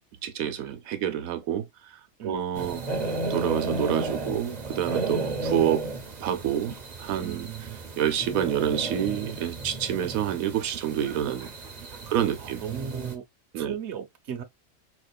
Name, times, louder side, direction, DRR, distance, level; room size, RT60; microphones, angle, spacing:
voice 1, 0.2-2.8 3.3-5.9 6.2-7.5 8.0-11.5 12.1-12.6 13.5-13.7, right 10 dB, 90° right, 1.1 m, -28 dB
sound 1, 2.5-13.2, right 2 dB, 40° right, 0.8 m, -34 dB
voice 2, 7.1-7.8 11.8-12.1 12.4-13.2 13.6-14.4, right 8 dB, 60° right, 1.0 m, -37 dB
4.3 x 2.5 x 2.3 m
omnidirectional pair, 1.4 m